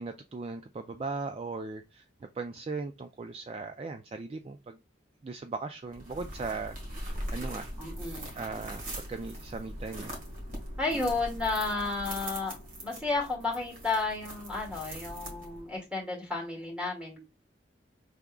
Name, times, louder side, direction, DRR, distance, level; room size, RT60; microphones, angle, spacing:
voice 1, 0.0-2.0 2.4-4.8 5.2-7.7 8.3-10.1, right 4 dB, 35° right, 7 dB, 0.3 m, -38 dB
sound 1, 5.9-15.8, equal, 50° right, 1.6 m, -41 dB
voice 2, 7.8-8.3 10.8-17.2, left 3 dB, 5° right, -3 dB, 1.9 m, -32 dB
4.9 x 3.5 x 2.2 m, 0.26 s
head